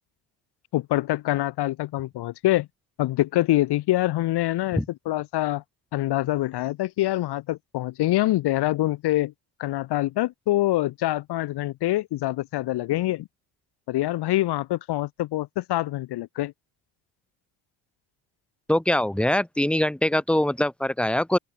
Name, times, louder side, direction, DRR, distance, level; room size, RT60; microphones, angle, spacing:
voice 1, 0.7-2.7 3.0-5.6 5.9-9.3 9.6-13.3 13.9-16.5, left 16 dB, 60° left, 1.3 m, -25 dB
voice 2, 18.7-21.4, left 1 dB, ahead, 2.5 m, -23 dB
open air
cardioid pair, 160°, 45 cm